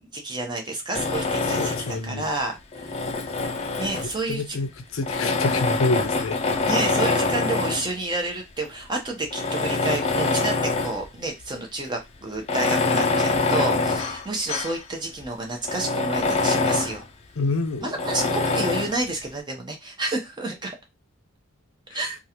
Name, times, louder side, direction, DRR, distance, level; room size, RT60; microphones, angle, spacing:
voice 1, 0.1-3.0 3.8-4.6 6.6-10.6 10.8-17.0 17.8-20.7 21.9-22.1, right 2 dB, 20° right, 0.8 m, -30 dB
Tools, 0.9-2.1 2.7-4.3 5.0-7.9 8.6-8.7 9.3-11.1 11.4-11.5 12.4-14.8 15.2-15.3 15.6-17.0 18.0-19.0, left 3 dB, 30° left, 0.4 m, -25 dB
voice 2, 1.5-2.3 3.5-3.7 4.3-6.4 17.4-18.0 21.9-22.1, left 3 dB, 90° left, 0.6 m, -27 dB
3.0 x 2.4 x 2.8 m
head